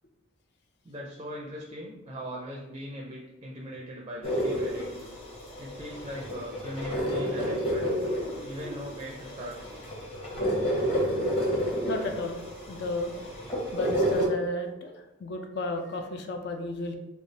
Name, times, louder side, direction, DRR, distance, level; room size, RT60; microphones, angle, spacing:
voice 1, 0.8-5.1 5.6-7.9 8.4-9.6, equal, 25° right, -1 dB, 0.4 m, -40 dB
sound 1, 4.2-14.3, equal, 30° left, 0.9 m, -30 dB
voice 2, 11.9-12.4 12.7-13.1 13.7-16.9, left 2 dB, 55° left, 4 dB, 0.4 m, -33 dB
3.4 x 2.3 x 3.9 m, 0.99 s
head